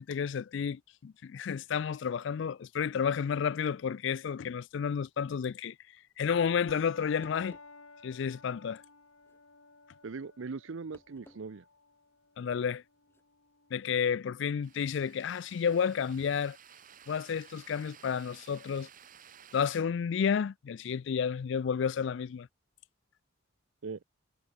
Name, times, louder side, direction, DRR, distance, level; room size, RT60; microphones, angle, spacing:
voice 1, 0.0-5.7 6.2-7.6 8.0-8.8 12.4-12.8 13.7-16.6 17.1-18.9 19.5-22.5, left 7 dB, 60° left, 0.3 m, -31 dB
sound 1, 6.7-15.7, left 3 dB, 90° left, 7.6 m, -55 dB
sound 2, 7.2-7.8 9.2-9.4 10.9-11.5 11.8-11.9 13.1-13.2, equal, 10° left, 2.4 m, -57 dB
voice 2, 10.0-11.6 23.8-24.0, right 4 dB, 70° right, 0.6 m, -40 dB
sound 3, 14.6-19.8, right 8 dB, 40° right, 1.3 m, -55 dB
head